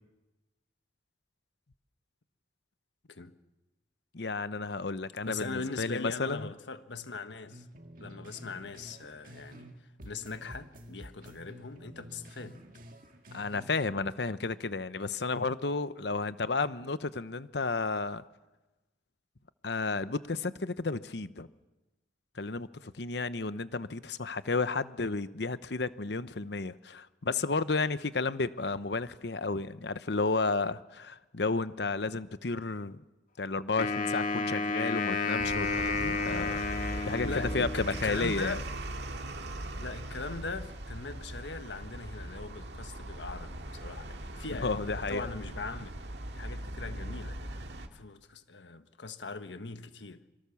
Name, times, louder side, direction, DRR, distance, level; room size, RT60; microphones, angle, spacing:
voice 1, 4.1-6.5 13.3-18.2 19.6-21.5 22.4-33.0 33.4-36.6 37.0-37.3 37.5-38.6 44.5-45.3, left 3 dB, 70° left, 0.9 m, -32 dB
voice 2, 5.2-7.6 8.0-9.7 10.0-12.6 37.1-38.7 39.8-45.9 46.3-47.4 47.9-50.2, left 3 dB, 90° left, 1.4 m, -40 dB
sound 1, 7.5-9.7 10.0-13.7, equal, 50° right, 2.2 m, -50 dB
Wind instrument woodwind instrument, 33.8-38.1, left 3 dB, 50° left, 2.2 m, -31 dB
sound 2, 35.4-47.9, right 1 dB, 70° right, 2.0 m, -40 dB
26.0 x 24.0 x 7.1 m
head